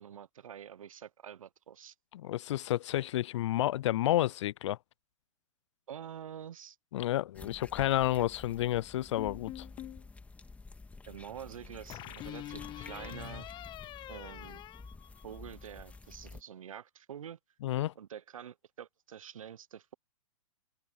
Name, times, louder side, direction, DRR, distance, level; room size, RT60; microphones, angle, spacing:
voice 1, 0.0-1.9 5.9-6.8 11.1-13.5 14.1-14.6 15.2-17.4 18.0-19.9, right 9 dB, 75° right, 0.8 m, -47 dB
voice 2, 2.1-4.8 6.9-9.7 17.6-17.9, left 14 dB, 55° left, 0.5 m, -30 dB
sound 1, 7.3-16.4, left 3 dB, 10° left, 2.2 m, -50 dB
sound 2, 9.2-10.1 11.9-15.7, left 14 dB, 25° left, 0.9 m, -45 dB
open air
hypercardioid pair, 120°, 18 cm